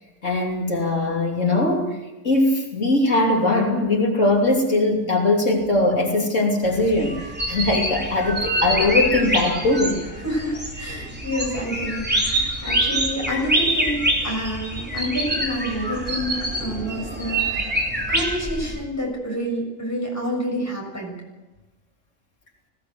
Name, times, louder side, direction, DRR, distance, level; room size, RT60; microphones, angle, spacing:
voice 1, 0.2-2.0 2.2-10.0, left 2 dB, 75° left, 0 dB, 3.4 m, -20 dB
sound 1, 6.6-18.8, right 1 dB, 10° right, 3.5 m, -25 dB
voice 2, 10.2-17.8 18.1-21.2, equal, 15° left, -1 dB, 6.9 m, -28 dB
21.0 x 17.5 x 8.0 m, 1.1 s
omnidirectional pair, 1.3 m